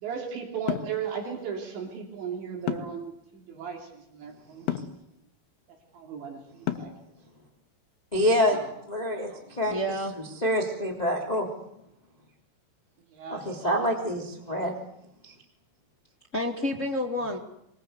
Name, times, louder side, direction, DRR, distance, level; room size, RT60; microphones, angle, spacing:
voice 1, 0.0-4.7 5.9-6.9 8.5-8.7 9.3-9.6 13.1-13.5, right 7 dB, 75° right, 1 dB, 5.2 m, -36 dB
sound 1, 0.7-1.0 2.7-3.1 4.7-5.0 6.7-7.1, left 11 dB, 75° left, 3.6 m, -30 dB
voice 2, 8.1-8.6 8.9-9.8 10.1-11.5 13.3-14.7 15.2-15.3, equal, 10° left, 1 dB, 2.8 m, -26 dB
voice 3, 9.7-10.1 16.3-17.4, left 1 dB, 25° left, 2 dB, 1.7 m, -29 dB
26.0 x 22.0 x 8.2 m, 0.78 s
omnidirectional pair, 5.2 m